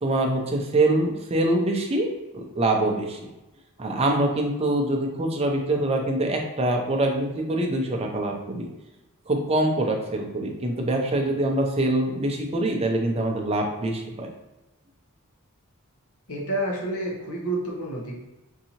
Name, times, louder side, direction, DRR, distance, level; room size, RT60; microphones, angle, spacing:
voice 1, 0.0-3.3 3.8-8.7 9.3-14.3, right 1 dB, 25° right, 1 dB, 0.5 m, -24 dB
voice 2, 16.3-18.1, right 1 dB, 70° left, -2 dB, 1.0 m, -29 dB
3.9 x 2.7 x 2.8 m, 1.0 s
head